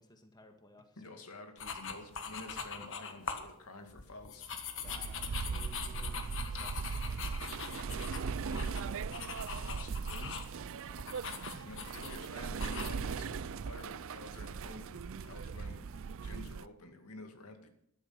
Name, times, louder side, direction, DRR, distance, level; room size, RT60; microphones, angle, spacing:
voice 1, 0.0-1.2 4.8-9.0 10.9-12.1, left 1 dB, 20° left, 5 dB, 1.7 m, -58 dB
voice 2, 1.0-4.4 8.4-8.8 9.5-10.4 11.6-15.9 16.2-17.7, left 2 dB, 85° left, 5 dB, 2.3 m, -50 dB
sound 1, 1.6-3.5 3.9-10.6 11.0-12.2 12.6-12.9, left 6 dB, 60° left, 1.6 m, -42 dB
sound 2, 4.8-16.6, right 5 dB, 60° right, 0.5 m, -39 dB
13.5 x 12.0 x 5.8 m, 0.73 s
head